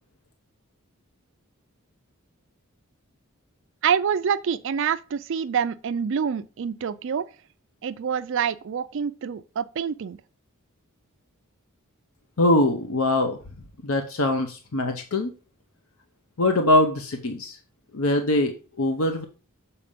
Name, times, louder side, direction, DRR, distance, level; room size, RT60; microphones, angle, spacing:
voice 1, 3.8-7.3 7.8-10.2, right 7 dB, 60° right, 0.4 m, -26 dB
voice 2, 12.4-13.4 13.8-15.3 16.4-17.6 17.9-19.2, left 1 dB, 80° left, 0.8 m, -22 dB
7.0 x 4.2 x 5.1 m
head